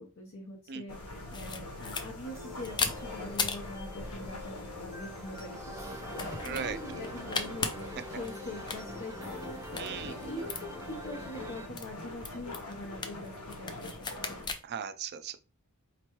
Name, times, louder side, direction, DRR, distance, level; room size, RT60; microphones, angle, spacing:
voice 1, 0.0-14.4, left 1 dB, 60° left, 0.8 m, -44 dB
sound 1, 0.9-14.5, left 1 dB, 85° left, 1.2 m, -44 dB
sound 2, 1.3-14.6, left 4 dB, 20° left, 0.4 m, -40 dB
sound 3, 2.2-11.7, equal, 15° right, 0.8 m, -45 dB
voice 2, 6.4-6.8 9.8-10.1 14.6-15.4, right 7 dB, 50° right, 0.4 m, -37 dB
4.4 x 3.0 x 3.0 m
head